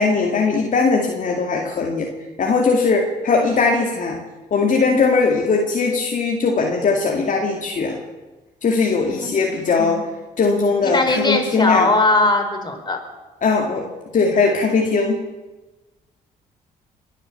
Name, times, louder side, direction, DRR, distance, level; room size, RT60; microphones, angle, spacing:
voice 1, 0.0-2.1 2.4-4.2 4.5-8.0 8.6-10.0 10.4-11.9 13.4-13.9 14.1-15.3, left 4 dB, 50° left, 0 dB, 2.3 m, -19 dB
voice 2, 9.6-10.0 10.8-13.0, left 2 dB, 25° left, 3 dB, 4.3 m, -19 dB
22.5 x 9.0 x 7.0 m, 1.1 s
supercardioid pair, 70°, 16 cm